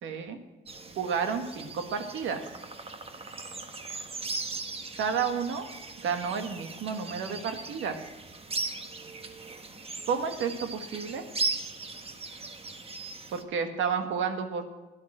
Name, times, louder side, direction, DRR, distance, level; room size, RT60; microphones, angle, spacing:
voice 1, 0.0-0.4 1.0-2.4 5.0-5.7 6.0-8.0 10.1-11.2 13.3-14.6, right 6 dB, 80° right, 7 dB, 1.6 m, -31 dB
sound 1, 0.7-13.4, right 3 dB, 30° right, 1.3 m, -38 dB
12.0 x 10.5 x 6.1 m, 1.2 s
cardioid pair, 90°, 20 cm